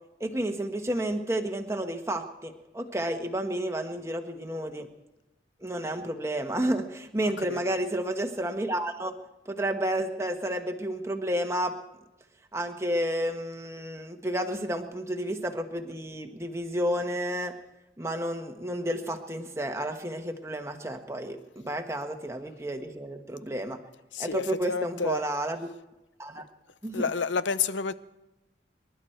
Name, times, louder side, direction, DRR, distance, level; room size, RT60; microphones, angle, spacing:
voice 1, 0.2-4.9 5.6-9.2 9.4-11.7 12.5-17.5 18.0-23.8 24.2-25.7 26.2-26.4 26.8-27.0, right 1 dB, 15° right, 1.3 m, -31 dB
voice 2, 7.4-7.7 24.1-25.2 26.9-27.9, left 5 dB, 75° left, 0.7 m, -30 dB
26.5 x 11.5 x 4.5 m
head